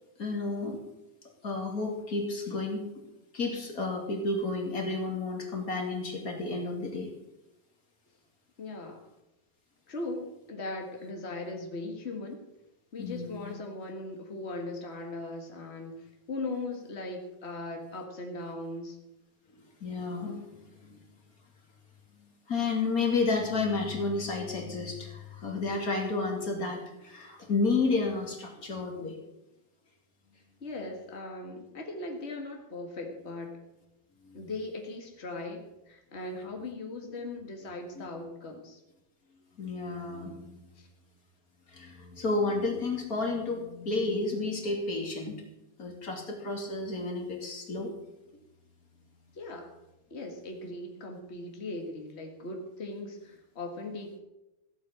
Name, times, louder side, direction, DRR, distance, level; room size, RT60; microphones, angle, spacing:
voice 1, 0.2-0.8 1.4-2.9 3.3-7.1 13.0-13.5 19.8-21.0 22.2-29.2 34.2-34.4 38.0-38.1 39.6-40.7 41.7-45.4 45.8-47.9, left 3 dB, 25° left, 1 dB, 2.5 m, -31 dB
voice 2, 8.6-9.1 9.9-12.4 12.9-19.0 30.6-33.6 34.3-38.8 40.7-40.9 49.3-49.8 50.1-54.2, left 2 dB, 65° left, 2 dB, 0.6 m, -39 dB
15.0 x 8.4 x 7.3 m, 0.94 s
omnidirectional pair, 4.2 m